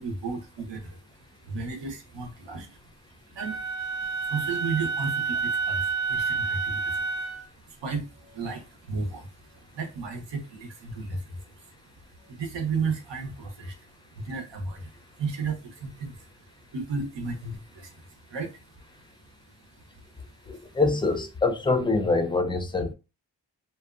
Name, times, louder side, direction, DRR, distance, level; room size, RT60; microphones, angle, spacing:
voice 1, 0.0-20.8, right 4 dB, 85° right, 0.8 m, -35 dB
Wind instrument woodwind instrument, 3.4-7.5, right 4 dB, 40° right, 0.6 m, -29 dB
voice 2, 20.5-22.9, left 3 dB, 10° left, 0.4 m, -25 dB
2.6 x 2.1 x 2.4 m
wide cardioid pair, 75°, 42 cm